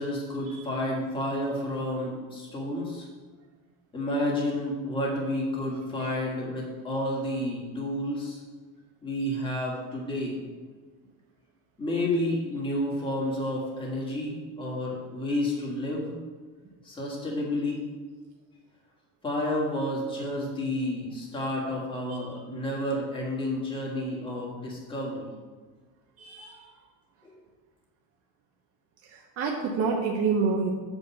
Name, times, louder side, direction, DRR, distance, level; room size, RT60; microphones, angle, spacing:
voice 1, 0.0-3.1 3.9-8.4 9.0-10.4 11.8-16.1 16.8-17.8 19.2-25.3, left 1 dB, 10° left, -3 dB, 1.7 m, -30 dB
voice 2, 26.2-26.6 29.1-30.7, right 5 dB, 35° right, 0 dB, 0.8 m, -28 dB
6.3 x 5.3 x 7.0 m, 1.4 s
cardioid pair, 175°, 42 cm